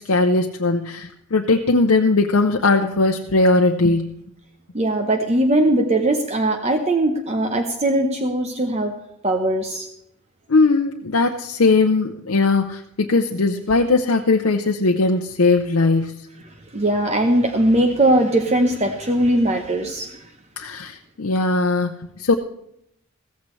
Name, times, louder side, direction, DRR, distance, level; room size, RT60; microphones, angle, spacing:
voice 1, 0.0-4.1 10.5-16.2 20.6-22.3, left 3 dB, 70° left, 2 dB, 0.7 m, -19 dB
voice 2, 4.7-8.9 9.2-9.9 16.7-20.2, right 1 dB, 30° right, 5 dB, 0.9 m, -20 dB
15.5 x 14.5 x 3.2 m, 0.77 s
head